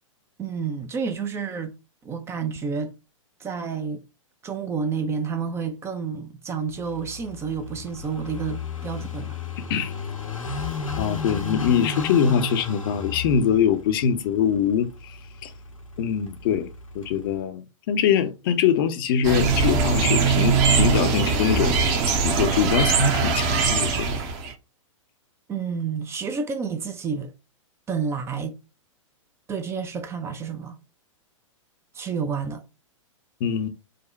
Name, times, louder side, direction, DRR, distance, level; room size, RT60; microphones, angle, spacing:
voice 1, 0.4-1.8 2.0-3.0 3.4-4.0 4.4-9.4 25.5-27.3 27.9-28.6 29.5-30.8 31.9-32.6, right 5 dB, 15° right, 0.4 m, -30 dB
Car passing by / Idling, 6.8-17.4, left 5 dB, 80° left, 0.9 m, -34 dB
voice 2, 11.0-15.5 16.0-16.7 16.9-21.8 22.2-24.2 33.4-33.7, left 8 dB, 40° left, 0.6 m, -23 dB
sound 1, 19.2-24.5, right 5 dB, 35° right, 0.9 m, -21 dB
5.0 x 2.2 x 4.0 m
figure-of-eight pair, 105°, 17 cm